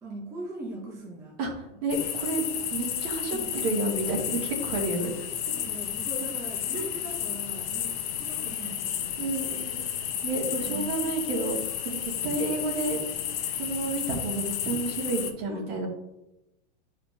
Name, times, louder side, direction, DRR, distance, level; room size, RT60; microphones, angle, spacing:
voice 1, 0.0-1.4 1.7-1.8 3.3-3.8 4.7-4.8 5.5-9.6 10.5-10.9 15.5-15.9, right 1 dB, 10° right, -3 dB, 0.7 m, -41 dB
voice 2, 1.8-2.5 2.7-5.1 5.5-5.6 6.7-6.9 9.2-9.8 10.2-11.6 11.8-13.0 13.6-15.9, right 2 dB, 65° right, -2 dB, 2.1 m, -30 dB
sound 1, 1.9-15.3, left 10 dB, 55° left, 0.9 m, -32 dB
9.1 x 4.3 x 2.8 m, 0.93 s
supercardioid pair, 165°, 34 cm